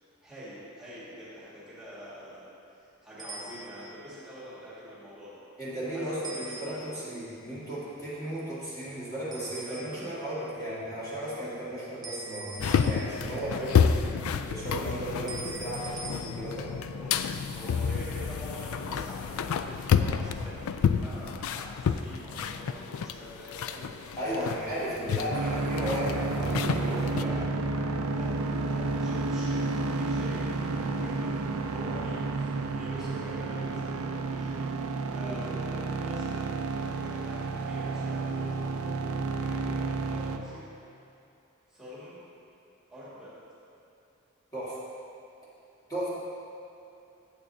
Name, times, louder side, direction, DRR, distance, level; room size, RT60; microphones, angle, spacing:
voice 1, 0.2-2.5 3.0-5.4 5.9-6.9 9.4-10.1 13.1-13.9 17.0-23.9 24.3-25.5 26.8-27.4 28.1-28.3 28.7-29.7 29.9-34.6 35.1-40.6 41.7-42.2 42.9-43.3, equal, 5° right, -11 dB, 1.9 m, -45 dB
sound 1, 3.2-4.0 6.2-7.1 9.3-10.2 12.0-13.5 15.3-16.2, right 3 dB, 20° right, 0.7 m, -42 dB
voice 2, 5.6-14.0 14.5-16.8 24.2-27.3 35.2-35.4 44.5-44.8 45.9-46.1, right 1 dB, 20° left, -11 dB, 1.9 m, -35 dB
sound 2, 12.6-27.2, left 7 dB, 90° left, 0.3 m, -30 dB
sound 3, 25.3-40.4, right 3 dB, 85° right, 0.4 m, -31 dB
8.6 x 8.3 x 2.7 m, 2.7 s
head